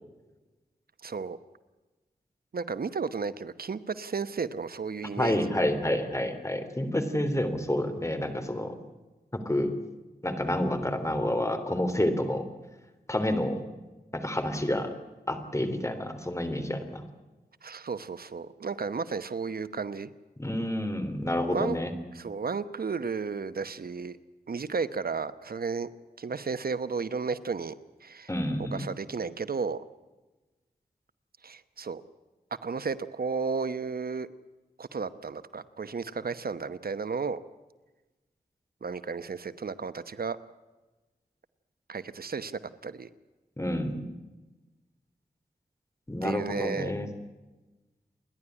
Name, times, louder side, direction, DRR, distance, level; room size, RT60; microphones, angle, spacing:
voice 1, 1.0-1.4 2.5-5.6 17.6-20.1 21.5-21.8 22.1-24.2 24.5-25.9 26.2-27.7 28.0-28.3 28.7-29.8 31.4-32.0 32.6-34.3 34.8-37.4 38.8-40.4 41.9-43.1 46.2-46.9, right 5 dB, 70° right, 14 dB, 1.0 m, -33 dB
voice 2, 5.2-8.8 9.3-9.7 10.2-12.4 13.1-13.6 14.1-14.9 15.3-17.0 20.4-21.9 28.3-28.9 43.6-44.0 46.1-47.1, left 1 dB, 20° left, 7 dB, 3.5 m, -29 dB
29.5 x 11.5 x 10.0 m, 1.1 s
wide cardioid pair, 80°, 16 cm